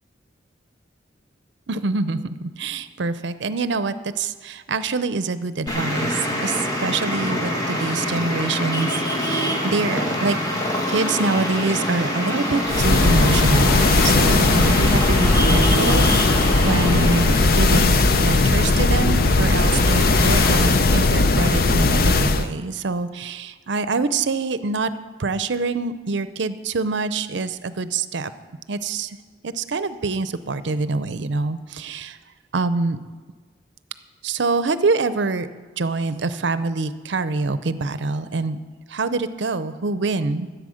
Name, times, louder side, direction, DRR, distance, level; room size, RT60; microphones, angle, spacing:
voice 1, 1.7-8.9 9.2-10.4 10.9-17.9 18.2-24.9 25.2-28.3 28.7-29.2 29.4-32.2 32.5-33.0 34.2-35.5 35.8-38.6 38.9-40.5, right 3 dB, 75° right, 13 dB, 0.6 m, -25 dB
Traffic noise roadway noise, 5.7-20.7, equal, 20° left, 1.5 m, -25 dB
sound 1, 12.7-22.5, left 3 dB, 50° left, 0.5 m, -18 dB
14.0 x 8.1 x 6.4 m, 1.4 s
head